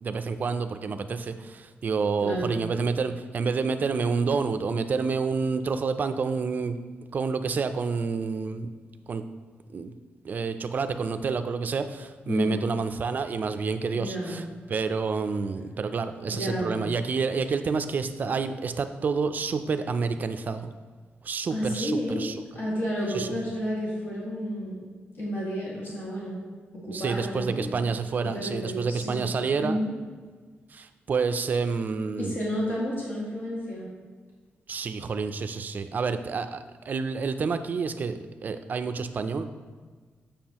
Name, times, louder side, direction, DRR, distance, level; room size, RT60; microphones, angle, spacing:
voice 1, 0.0-6.8 7.1-8.7 9.1-9.2 9.7-9.9 10.2-20.7 21.2-22.4 23.1-23.3 26.9-29.8 30.7-32.4 34.7-39.4, right 5 dB, 45° right, 9 dB, 0.4 m, -29 dB
voice 2, 2.2-2.6 12.3-12.6 13.9-14.4 16.3-16.8 21.5-22.2 22.5-24.8 25.2-26.4 26.7-27.8 28.2-29.2 29.6-29.9 32.2-33.9, equal, 60° left, -6 dB, 2.0 m, -31 dB
7.3 x 6.8 x 2.9 m, 1.5 s
wide cardioid pair, 135°, 4 cm